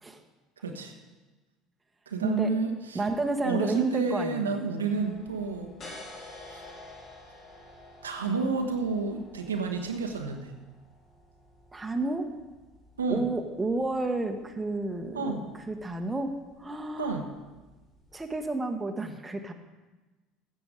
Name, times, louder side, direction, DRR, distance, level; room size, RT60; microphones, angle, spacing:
voice 1, 0.6-0.9 2.1-3.0 3.4-5.7 6.5-6.6 8.0-10.5 13.0-13.3 15.1-15.4 17.0-17.3, right 4 dB, 80° right, 4 dB, 1.1 m, -30 dB
voice 2, 2.2-2.5 2.9-4.6 11.7-12.3 13.1-15.4 15.7-16.3 16.6-17.2 18.1-19.5, right 2 dB, 15° right, 5 dB, 1.2 m, -30 dB
sound 1, 4.9-18.5, left 2 dB, 40° left, 3.4 m, -51 dB
15.5 x 7.0 x 5.1 m, 1.2 s
figure-of-eight pair, 65°, 0 cm